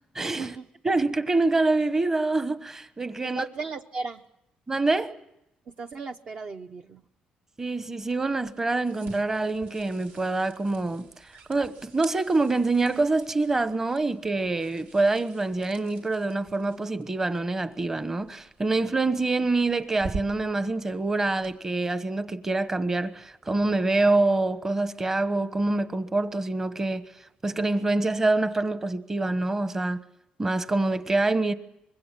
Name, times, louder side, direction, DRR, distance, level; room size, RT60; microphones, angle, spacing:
voice 1, 0.1-0.5 0.8-3.4 4.7-5.1 7.6-11.1 11.5-27.0 27.4-30.0 30.4-31.5, right 2 dB, 15° right, 1.2 m, -25 dB
voice 2, 3.2-4.2 5.7-7.0, right 4 dB, 40° right, 0.9 m, -36 dB
sound 1, 8.0-21.5, right 4 dB, 70° right, 3.3 m, -46 dB
25.0 x 21.5 x 7.5 m
cardioid pair, 135°, 3 cm